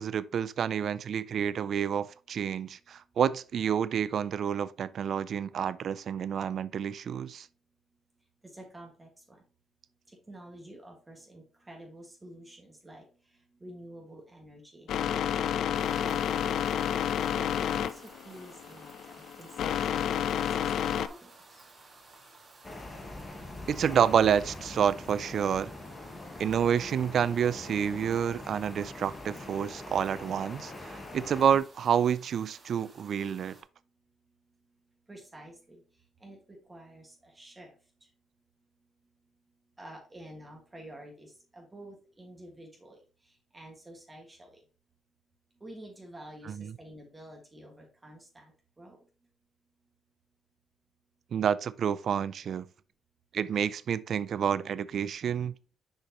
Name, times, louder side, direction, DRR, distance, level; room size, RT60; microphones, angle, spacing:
voice 1, 0.0-7.5 23.7-25.7 26.4-33.6 46.5-46.7 51.3-52.6 53.3-55.5, right 8 dB, 60° right, 0.3 m, -29 dB
voice 2, 8.5-9.4 10.1-13.0 13.6-16.8 17.3-20.1 20.3-20.7 21.0-21.3 21.5-21.7 35.1-35.8 36.2-37.7 39.8-43.0 43.2-44.6 45.6-48.5 48.8-49.0, right 1 dB, 20° right, 1.8 m, -49 dB
sound 1, 14.9-21.1, left 9 dB, 70° left, 0.3 m, -30 dB
sound 2, 15.7-33.6, right 3 dB, 35° right, 2.4 m, -55 dB
sound 3, 22.6-31.6, left 2 dB, 30° left, 1.2 m, -43 dB
6.3 x 5.1 x 2.9 m
cardioid pair, 90°, 0 cm